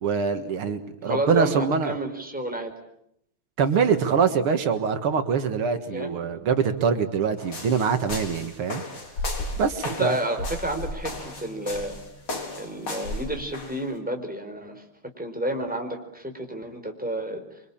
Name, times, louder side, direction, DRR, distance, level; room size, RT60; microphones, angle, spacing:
voice 1, 0.0-2.0 3.6-8.8 9.6-10.2, right 6 dB, 80° right, 8 dB, 2.6 m, -24 dB
voice 2, 1.0-2.7 5.9-6.2 9.8-12.0 12.6-14.8 15.2-17.6, right 1 dB, 5° right, 3 dB, 4.5 m, -31 dB
sound 1, 7.4-13.8, left 2 dB, 80° left, 4.9 m, -34 dB
28.0 x 24.5 x 8.7 m, 0.76 s
omnidirectional pair, 2.4 m